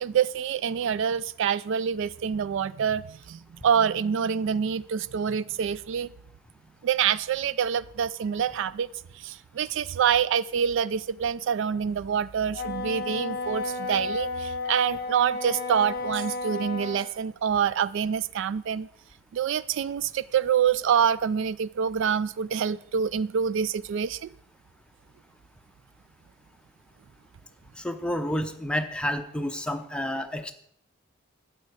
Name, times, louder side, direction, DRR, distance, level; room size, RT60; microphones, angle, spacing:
voice 1, 0.0-6.1 6.8-8.9 9.2-18.9 19.3-24.2, right 7 dB, 65° right, 18 dB, 0.3 m, -26 dB
Wind instrument woodwind instrument, 12.5-17.1, left 4 dB, 50° left, 0.6 m, -33 dB
Wind instrument woodwind instrument 2, 13.4-17.3, right 4 dB, 30° right, 0.7 m, -41 dB
voice 2, 27.8-30.5, left 1 dB, 5° left, 6 dB, 0.8 m, -30 dB
12.5 x 9.1 x 4.8 m, 0.67 s
head